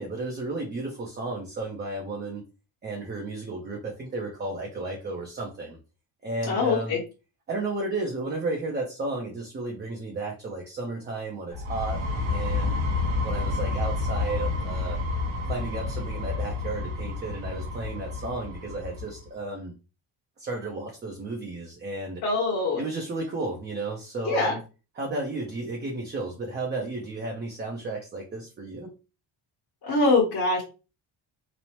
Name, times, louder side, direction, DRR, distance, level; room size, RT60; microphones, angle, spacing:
voice 1, 0.0-2.4 2.8-5.8 6.2-7.0 7.5-12.0 12.3-12.8 13.2-15.0 15.4-19.7 20.4-22.2 22.8-24.6 25.0-28.9, right 2 dB, 25° right, 0 dB, 0.4 m, -33 dB
voice 2, 6.4-7.0 22.2-22.8 24.2-24.6 29.8-30.6, left 3 dB, 50° left, -4 dB, 1.0 m, -23 dB
sound 1, 11.5-19.2, left 3 dB, 70° right, 0.8 m, -29 dB
3.0 x 2.0 x 2.8 m, 0.31 s
cardioid pair, 125°, 48 cm